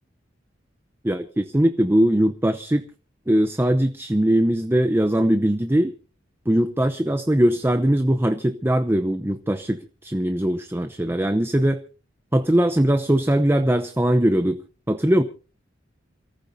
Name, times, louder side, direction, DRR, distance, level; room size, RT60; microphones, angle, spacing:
voice 1, 1.0-2.9 3.3-5.9 6.5-11.8 12.3-14.6 14.9-15.2, right 1 dB, 10° right, 9 dB, 0.7 m, -20 dB
28.5 x 14.5 x 2.7 m, 0.36 s
head